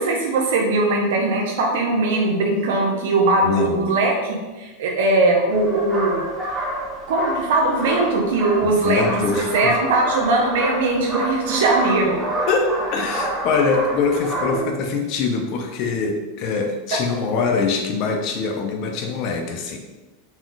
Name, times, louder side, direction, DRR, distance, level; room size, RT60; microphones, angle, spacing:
voice 1, 0.0-6.2 7.1-9.1 9.4-12.2 14.4-14.7, right 2 dB, 75° right, 0 dB, 0.7 m, -20 dB
voice 2, 3.4-3.9 8.6-9.8 12.5-19.8, left 4 dB, 40° left, 4 dB, 0.6 m, -23 dB
sound 1, 5.5-14.6, right 1 dB, 10° right, 0.7 m, -28 dB
4.1 x 2.4 x 3.8 m, 1.2 s
supercardioid pair, 155°, 0 cm